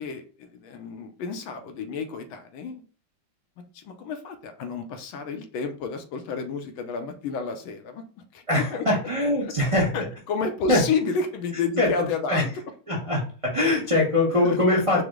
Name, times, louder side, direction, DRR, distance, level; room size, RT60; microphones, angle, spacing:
voice 1, 0.0-2.8 3.7-8.0 8.3-8.8 9.4-9.5 9.9-12.5 14.3-15.0, left 5 dB, 80° left, 6 dB, 1.4 m, -31 dB
voice 2, 8.5-9.9 10.7-10.8 11.8-12.4 12.9-15.0, left 2 dB, 40° right, -5 dB, 0.4 m, -22 dB
4.9 x 2.0 x 3.5 m, 0.39 s
omnidirectional pair, 2.3 m